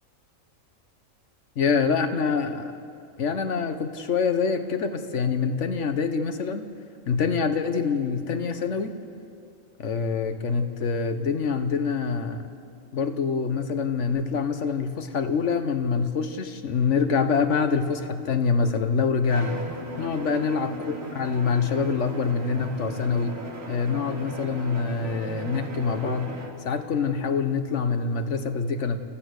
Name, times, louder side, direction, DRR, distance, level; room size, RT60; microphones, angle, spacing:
voice 1, 1.6-2.7 3.2-6.7 7.1-9.0 9.8-12.4 12.9-19.6 20.0-23.3 23.7-29.0, left 5 dB, 60° left, 8 dB, 1.3 m, -25 dB
Bowed string instrument, 19.3-26.7, right 2 dB, 75° right, 2.2 m, -36 dB
28.0 x 15.0 x 6.5 m, 2.5 s
omnidirectional pair, 1.4 m